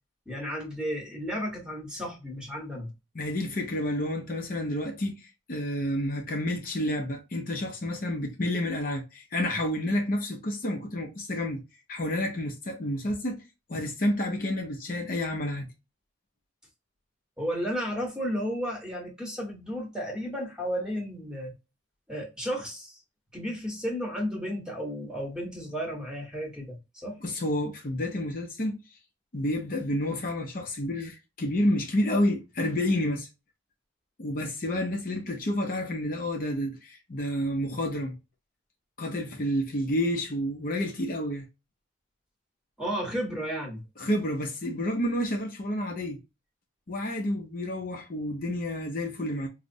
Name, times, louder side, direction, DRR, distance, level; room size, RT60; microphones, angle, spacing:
voice 1, 0.3-2.9 17.4-21.5 22.1-23.0 23.3-27.2 42.8-43.8, equal, 5° right, 1.0 m, -33 dB
voice 2, 3.1-11.6 11.9-13.4 13.7-15.7 27.2-28.8 29.3-33.3 34.2-38.2 39.0-41.5 44.0-46.2 46.9-49.5, left 1 dB, 45° left, 0.6 m, -29 dB
4.7 x 2.0 x 2.6 m
head